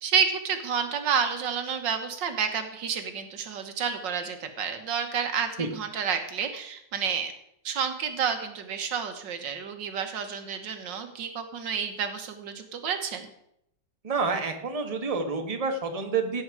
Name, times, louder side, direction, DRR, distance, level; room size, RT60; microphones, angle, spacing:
voice 1, 0.0-7.3 7.7-13.3, right 6 dB, 90° right, 7 dB, 1.9 m, -30 dB
voice 2, 14.0-16.4, right 4 dB, 20° right, 4 dB, 1.3 m, -28 dB
16.5 x 7.9 x 4.8 m, 0.77 s
omnidirectional pair, 1.9 m